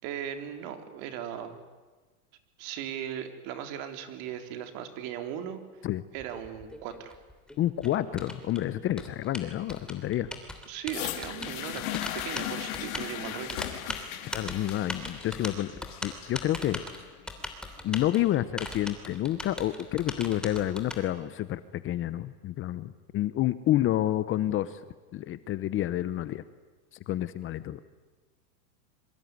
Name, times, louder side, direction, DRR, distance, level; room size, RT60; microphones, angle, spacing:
voice 1, 0.0-1.6 2.6-5.8 6.1-7.1 10.7-11.8 12.1-13.6, right 9 dB, 50° right, 7 dB, 3.8 m, -38 dB
Typing, 6.1-21.0, left 1 dB, ahead, 3.2 m, -40 dB
voice 2, 7.6-10.3 14.3-15.7 16.0-16.8 17.8-24.8 25.1-26.4 27.1-27.8, left 13 dB, 25° left, 14 dB, 0.9 m, -29 dB
sound 1, 10.9-18.9 19.7-19.8, left 13 dB, 65° left, 3.1 m, -38 dB
26.0 x 23.5 x 9.6 m, 1.3 s
supercardioid pair, 140°, 45 cm